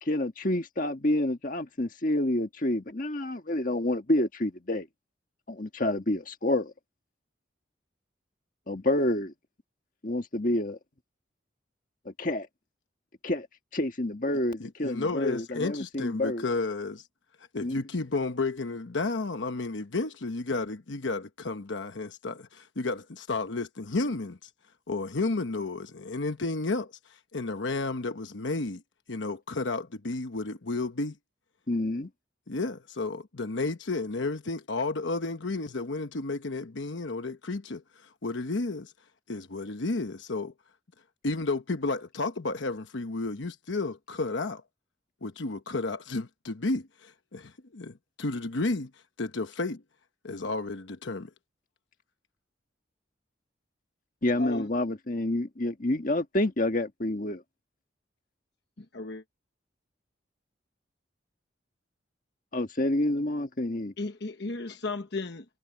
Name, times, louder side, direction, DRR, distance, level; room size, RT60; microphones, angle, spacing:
voice 1, 0.0-4.9 5.5-6.7 8.7-9.3 10.0-10.8 12.0-12.5 13.2-13.5 13.7-16.4 17.6-17.8 31.7-32.1 54.2-57.4 62.5-63.9, left 1 dB, 45° left, 1.6 m, -28 dB
voice 2, 14.6-17.1 17.5-24.5 24.9-28.8 29.1-31.1 32.5-38.9 39.3-40.5 41.2-44.6 45.2-49.8 50.2-51.3, left 3 dB, 80° left, 1.0 m, -32 dB
voice 3, 58.8-59.2 64.0-65.4, left 3 dB, 60° left, 1.2 m, -35 dB
head